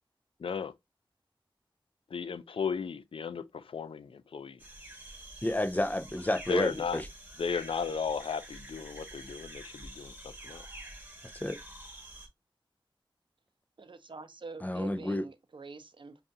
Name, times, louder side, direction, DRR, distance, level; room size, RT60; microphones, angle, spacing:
voice 1, 0.4-0.7 2.1-4.6 6.5-7.0 7.4-10.7, left 5 dB, 80° left, 0.4 m, -35 dB
sound 1, 4.6-12.3, right 1 dB, 20° right, 1.3 m, -48 dB
voice 2, 5.4-7.1 11.3-11.6 14.6-15.3, left 1 dB, 20° left, 0.5 m, -30 dB
voice 3, 13.8-16.2, right 3 dB, 65° right, 0.6 m, -46 dB
5.3 x 2.4 x 2.6 m
wide cardioid pair, 55°, 9 cm